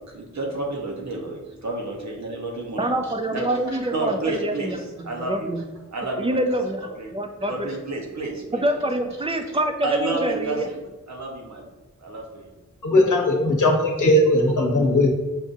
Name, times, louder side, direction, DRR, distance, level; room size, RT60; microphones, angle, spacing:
voice 1, 0.1-2.9 3.3-7.1 7.4-8.9 9.8-11.7 12.0-12.5, right 2 dB, 65° right, 0 dB, 0.9 m, -31 dB
voice 2, 2.8-4.8 5.1-5.6 6.2-6.8 7.1-7.7 8.5-10.7, right 1 dB, 20° right, 4 dB, 0.4 m, -25 dB
voice 3, 12.8-15.1, left 1 dB, 85° left, 0 dB, 0.8 m, -18 dB
6.0 x 2.6 x 2.5 m, 1.1 s
wide cardioid pair, 100°, 30 cm